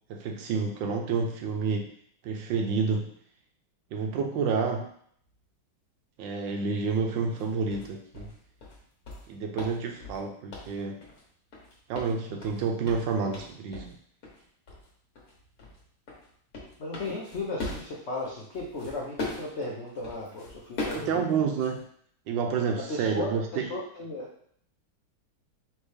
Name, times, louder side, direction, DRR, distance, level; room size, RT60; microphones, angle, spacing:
voice 1, 0.1-1.9 2.2-3.1 3.9-4.9 6.2-8.3 9.3-11.0 11.9-13.9 20.9-21.8 22.3-23.7, right 5 dB, 75° right, 4 dB, 1.2 m, -29 dB
sound 1, 7.3-7.4 7.7-11.2 11.5-14.0 14.2-14.4 14.7-14.9 15.1-21.8, left 2 dB, 50° left, 1.4 m, -40 dB
voice 2, 16.8-21.2 22.9-23.4 23.7-24.3, left 2 dB, 75° left, -4 dB, 0.6 m, -35 dB
4.4 x 3.2 x 3.2 m, 0.62 s
omnidirectional pair, 2.2 m